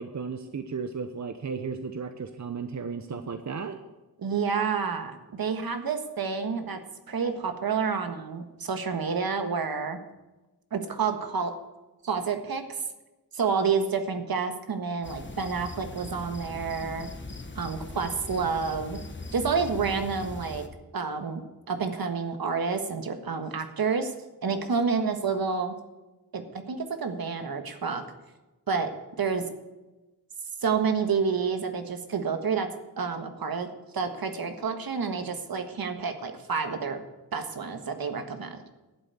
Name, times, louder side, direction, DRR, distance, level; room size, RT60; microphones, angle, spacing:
voice 1, 0.0-3.8, right 5 dB, 45° right, 8 dB, 0.9 m, -34 dB
voice 2, 4.2-6.8 7.1-10.0 10.7-11.5 12.0-12.6 13.3-17.1 17.6-19.0 19.3-20.6 20.9-21.4 21.7-24.1 24.4-25.7 26.3-28.0 28.7-28.9 29.2-29.4 30.6-32.7 33.0-33.7 33.9-37.0 37.3-38.6, right 5 dB, 65° right, 7 dB, 1.5 m, -29 dB
sound 1, 15.0-20.7, left 2 dB, 30° left, 1.5 m, -40 dB
11.5 x 8.0 x 8.1 m, 1.1 s
cardioid pair, 55°, 38 cm